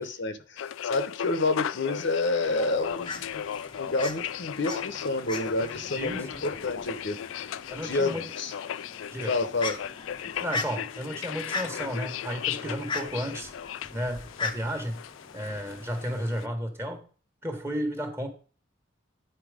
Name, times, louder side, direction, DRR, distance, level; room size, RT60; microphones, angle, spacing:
voice 1, 0.0-3.4 3.8-7.2 7.8-8.5 9.3-9.9, left 3 dB, 65° left, 10 dB, 0.9 m, -29 dB
sound 1, 0.6-16.5, left 9 dB, 90° left, 0.3 m, -37 dB
Fowl, 2.5-16.1, left 3 dB, 25° left, 0.7 m, -40 dB
voice 2, 5.9-6.5 7.7-8.2 9.1-9.3 10.2-13.5 13.9-15.0 15.3-17.0 17.4-18.3, equal, 15° right, 5 dB, 1.4 m, -33 dB
9.3 x 4.4 x 5.0 m, 0.40 s
head